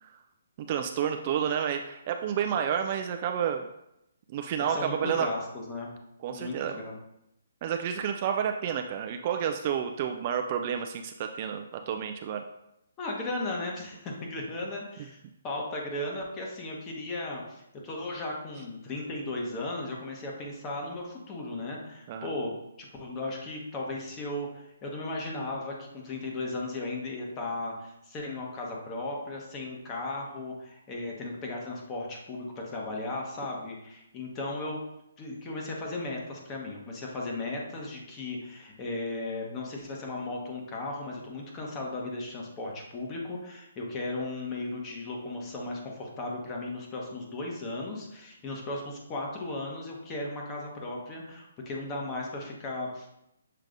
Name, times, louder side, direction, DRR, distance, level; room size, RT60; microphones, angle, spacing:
voice 1, 0.7-3.7 4.3-5.3 6.2-6.8 7.6-12.5 22.1-22.3, right 8 dB, 35° right, 5 dB, 0.3 m, -30 dB
voice 2, 4.7-5.9 6.3-6.9 13.0-34.8 35.2-53.1, left 2 dB, 20° left, -1 dB, 1.0 m, -36 dB
6.6 x 3.2 x 2.5 m, 0.84 s
hypercardioid pair, 150°, 0 cm